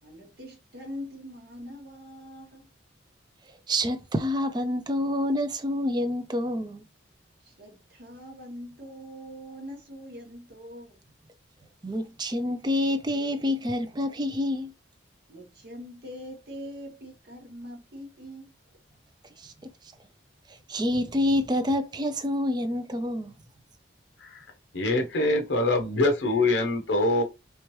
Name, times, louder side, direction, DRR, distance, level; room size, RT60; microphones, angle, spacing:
voice 1, 0.0-2.7 7.4-11.0 15.3-18.5 19.4-19.5, equal, 50° right, 1.1 m, -43 dB
voice 2, 3.7-6.8 11.8-14.7 19.4-19.5 20.7-23.3, left 1 dB, 20° right, 0.4 m, -27 dB
voice 3, 24.7-27.2, left 2 dB, 70° left, 0.7 m, -24 dB
3.3 x 3.0 x 3.0 m
head